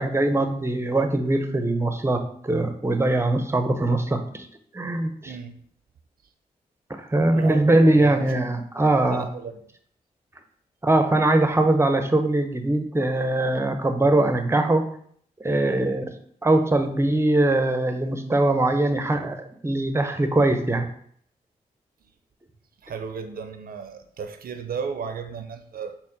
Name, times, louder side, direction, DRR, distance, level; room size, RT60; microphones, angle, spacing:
voice 1, 0.0-4.5 4.7-5.4 6.9-9.3 10.8-14.8 15.4-16.1 16.4-20.9, right 2 dB, 15° right, 7 dB, 0.6 m, -22 dB
voice 2, 7.3-8.3 9.1-9.5 22.8-26.0, right 6 dB, 60° right, 7 dB, 0.4 m, -34 dB
4.1 x 2.0 x 3.9 m, 0.63 s
supercardioid pair, 40°, 17 cm